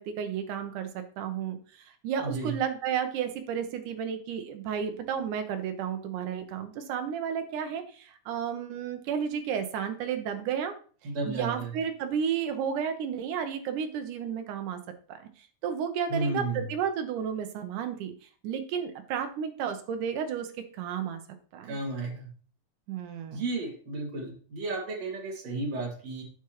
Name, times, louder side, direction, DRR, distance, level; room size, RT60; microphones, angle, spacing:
voice 1, 0.0-10.7 11.3-14.8 15.1-18.1 18.4-21.2 21.5-21.8 22.9-23.4, right 8 dB, 80° right, 7 dB, 2.4 m, -32 dB
voice 2, 2.2-2.5 11.0-11.7 16.1-16.7 21.7-22.3 23.3-26.2, right 2 dB, 55° right, -1 dB, 3.1 m, -33 dB
9.5 x 7.0 x 3.0 m, 0.42 s
omnidirectional pair, 3.6 m